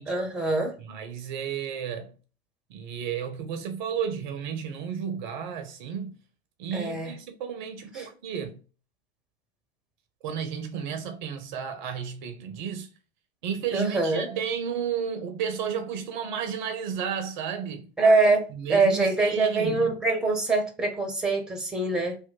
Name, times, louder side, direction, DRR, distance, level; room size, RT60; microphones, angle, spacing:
voice 1, 0.0-0.8 6.7-7.1 7.9-8.1 13.7-14.3 18.0-22.2, right 3 dB, ahead, 0.7 m, -24 dB
voice 2, 0.8-2.1 2.7-6.2 6.6-8.6 10.2-12.9 13.4-17.9 18.5-19.9, right 7 dB, 50° right, 0.5 m, -32 dB
2.9 x 2.1 x 3.9 m
figure-of-eight pair, 85°, 31 cm